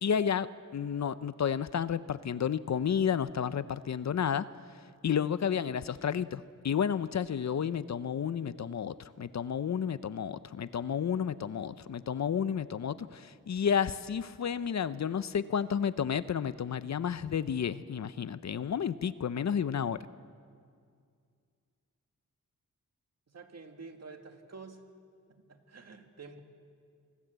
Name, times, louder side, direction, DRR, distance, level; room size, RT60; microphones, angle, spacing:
voice 1, 0.0-4.5 5.0-20.0, left 8 dB, 60° left, 15 dB, 0.6 m, -31 dB
voice 2, 23.3-24.8 25.3-26.4, right 4 dB, 50° right, 5 dB, 2.1 m, -49 dB
25.5 x 20.0 x 8.1 m, 2.2 s
wide cardioid pair, 120°, 32 cm